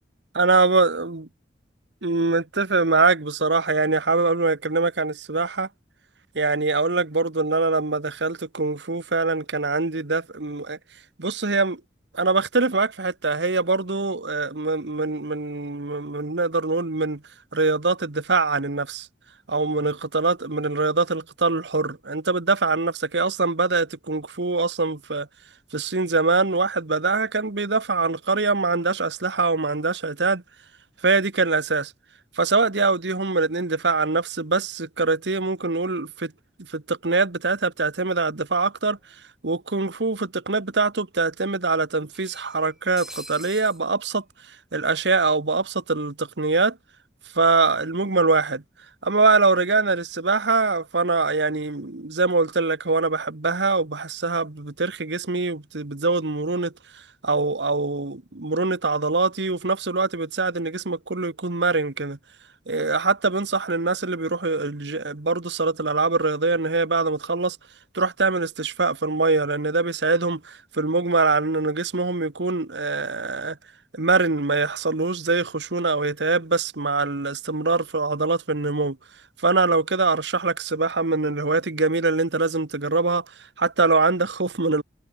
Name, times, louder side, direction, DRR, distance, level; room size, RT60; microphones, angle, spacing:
voice 1, 0.4-1.2 2.0-5.7 6.3-10.8 11.2-11.8 12.1-17.2 17.5-19.1 19.5-25.3 25.7-30.4 31.0-31.9 32.4-36.3 36.7-39.0 39.4-44.2 44.7-46.8 47.3-48.6 49.0-56.7 57.2-62.2 62.7-67.6 67.9-73.6 73.9-79.0 79.4-83.2 83.6-84.8, right 3 dB, 85° right, 1.4 m, -23 dB
sound 1, 38.7-38.8 39.1-39.2 40.2-40.3 40.7-40.8 42.1-43.8, right 1 dB, 5° right, 3.1 m, -43 dB
head